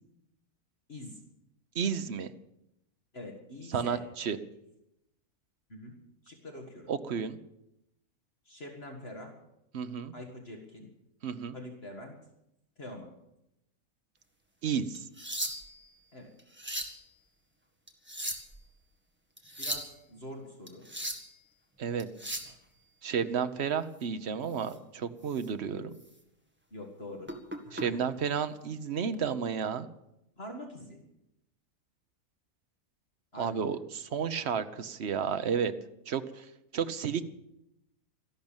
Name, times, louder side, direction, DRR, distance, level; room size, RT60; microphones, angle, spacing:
voice 1, 0.9-1.2 3.1-4.1 5.7-6.0 6.2-6.9 8.5-9.3 10.1-10.9 11.5-12.2 12.8-13.1 16.1-16.3 19.6-20.9 26.7-27.3 27.6-28.2 30.4-31.0 33.3-33.8, left 1 dB, 40° left, 2 dB, 2.1 m, -44 dB
voice 2, 1.7-2.3 3.7-4.4 6.9-7.4 9.7-10.1 11.2-11.6 14.6-15.0 21.8-22.1 23.0-25.9 27.7-29.9 33.4-35.7 36.1-36.4 36.7-37.2, right 7 dB, 50° right, 11 dB, 1.0 m, -32 dB
sound 1, 14.9-15.8 16.4-17.0 17.9-18.6 19.4-19.9 20.7-21.3 22.0-22.5 24.6-24.7 25.3-25.5 25.9-26.1 27.3-27.8 28.9-29.1, equal, 5° right, 1.6 m, -37 dB
13.5 x 12.0 x 8.9 m, 0.84 s
omnidirectional pair, 1.6 m